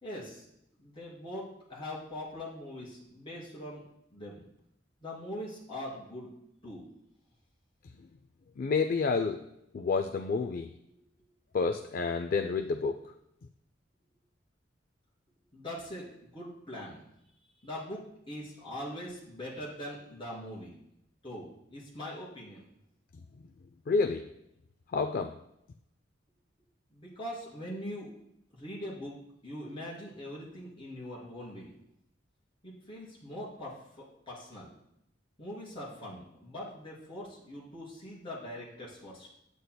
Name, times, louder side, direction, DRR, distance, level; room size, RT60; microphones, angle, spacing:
voice 1, 0.0-0.4 0.8-3.8 4.1-4.4 5.0-6.3 6.6-6.8 10.9-11.0 15.5-17.0 17.6-18.0 18.3-20.8 21.2-22.6 26.9-28.1 28.5-29.1 29.4-31.7 32.6-34.7 35.4-39.3, left 1 dB, 25° left, -6 dB, 2.9 m, -42 dB
voice 2, 8.6-9.4 9.7-10.7 11.5-13.0 23.9-24.2 24.9-25.3, left 4 dB, 45° left, 6 dB, 0.3 m, -29 dB
9.4 x 8.2 x 2.2 m, 0.79 s
head